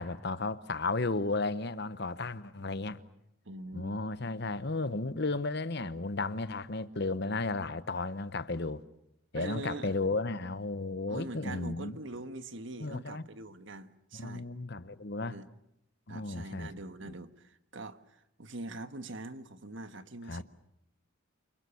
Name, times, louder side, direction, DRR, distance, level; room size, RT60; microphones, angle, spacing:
voice 1, 0.0-3.0 3.7-8.8 9.3-12.0 12.8-13.2 14.1-15.4 16.1-16.7 20.3-20.4, left 3 dB, 50° left, 1.1 m, -34 dB
voice 2, 3.4-4.0 9.3-10.0 11.1-14.5 15.2-15.5 16.1-20.4, right 2 dB, 60° right, 1.4 m, -43 dB
29.0 x 24.5 x 7.1 m
head